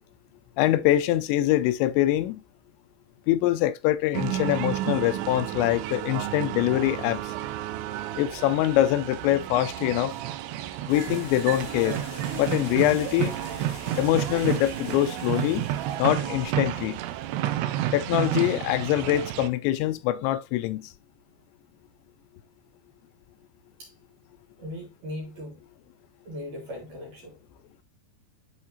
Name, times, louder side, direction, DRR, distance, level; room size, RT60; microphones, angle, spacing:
voice 1, 0.6-2.4 3.3-7.3 8.2-10.1 10.9-12.0 12.3-13.3 14.0-15.7 16.0-17.0 17.9-20.9, left 14 dB, 85° left, 2.8 m, -24 dB
sound 1, 4.1-19.5, right 13 dB, 80° right, 2.5 m, -31 dB
sound 2, 10.9-16.4, left 7 dB, 65° left, 2.3 m, -45 dB
voice 2, 24.6-25.6 26.2-27.4, left 1 dB, 55° right, 2.9 m, -38 dB
10.5 x 3.7 x 2.8 m
omnidirectional pair, 5.1 m